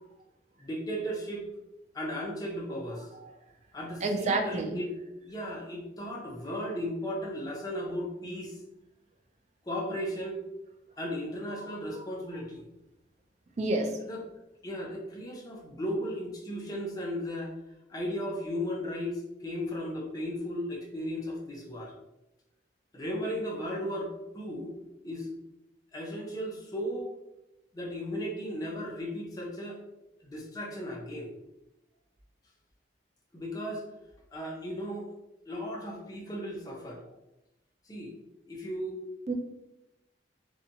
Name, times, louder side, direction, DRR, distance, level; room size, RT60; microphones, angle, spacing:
voice 1, 0.6-1.4 1.9-3.1 3.7-4.9 5.2-8.6 9.6-10.4 11.0-12.6 14.0-14.2 14.6-17.5 17.9-21.9 22.9-24.8 25.0-25.3 25.9-27.1 27.7-29.8 30.2-31.3 33.3-33.8 34.3-35.1 35.5-37.0 37.9-38.1 38.5-39.0, equal, 20° left, -1 dB, 0.5 m, -35 dB
voice 2, 4.0-4.8 13.6-14.0 39.3-39.4, right 2 dB, 40° right, 3 dB, 0.3 m, -29 dB
2.7 x 2.2 x 2.6 m, 0.90 s
head